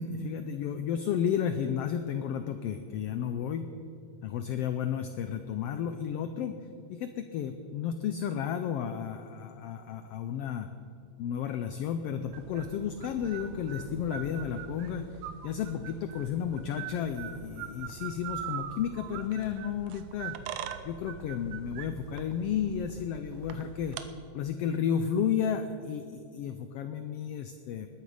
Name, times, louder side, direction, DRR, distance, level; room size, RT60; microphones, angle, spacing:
voice 1, 0.0-3.7 4.2-6.6 6.9-10.7 11.2-15.1 15.4-20.3 20.8-24.0 24.3-27.9, left 8 dB, 85° left, 8 dB, 1.3 m, -32 dB
sound 1, 12.3-24.0, right 9 dB, 90° right, 2.2 m, -42 dB
20.5 x 9.4 x 4.9 m, 2.6 s
omnidirectional pair, 3.4 m